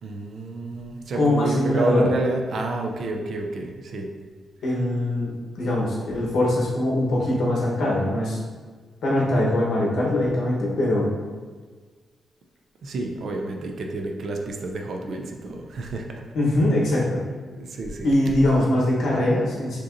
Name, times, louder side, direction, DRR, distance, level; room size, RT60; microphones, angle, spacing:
voice 1, 0.0-4.1 12.8-16.2 17.5-18.4, right 2 dB, 50° right, 3 dB, 0.4 m, -29 dB
voice 2, 1.1-2.1 4.6-8.4 9.0-11.1 16.3-17.2 18.0-19.8, left 1 dB, 70° left, -4 dB, 1.0 m, -22 dB
5.0 x 2.9 x 2.5 m, 1.5 s
wide cardioid pair, 170°, 0 cm